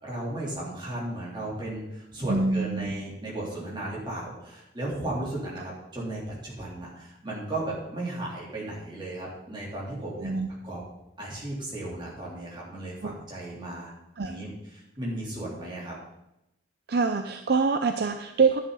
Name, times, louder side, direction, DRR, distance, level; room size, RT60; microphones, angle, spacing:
voice 1, 0.0-10.4 10.6-10.8 11.2-13.9 14.2-15.9, right 1 dB, 25° right, -6 dB, 3.5 m, -35 dB
voice 2, 2.3-2.9 10.2-10.5 13.0-13.1 14.2-14.3 16.9-18.6, right 4 dB, 55° right, 7 dB, 0.6 m, -25 dB
11.0 x 10.0 x 4.1 m, 0.88 s
head